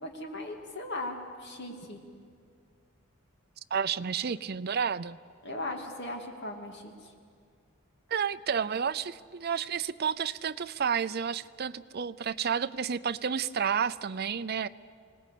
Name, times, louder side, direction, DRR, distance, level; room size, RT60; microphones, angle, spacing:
voice 1, 0.0-2.0 5.4-7.1, left 1 dB, 55° left, 3 dB, 2.6 m, -38 dB
voice 2, 3.7-5.2 8.1-14.7, right 7 dB, 45° right, 12 dB, 0.5 m, -31 dB
26.0 x 18.5 x 8.5 m, 2.1 s
head